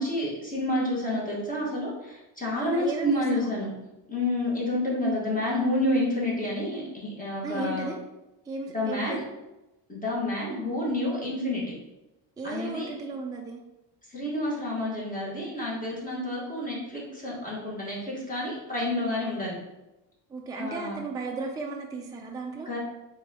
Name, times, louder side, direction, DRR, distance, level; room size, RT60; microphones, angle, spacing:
voice 1, 0.0-3.7 4.1-7.9 8.7-9.2 9.9-11.6 12.4-12.9 14.1-19.6 20.5-21.0 22.6-22.8, left 1 dB, 20° left, -5 dB, 1.5 m, -29 dB
voice 2, 2.6-3.6 7.4-8.0 8.5-9.3 10.4-10.7 12.4-13.6 20.3-22.7, right 3 dB, 10° right, 0 dB, 0.4 m, -35 dB
4.6 x 3.5 x 2.9 m, 0.98 s
cardioid pair, 120°, 46 cm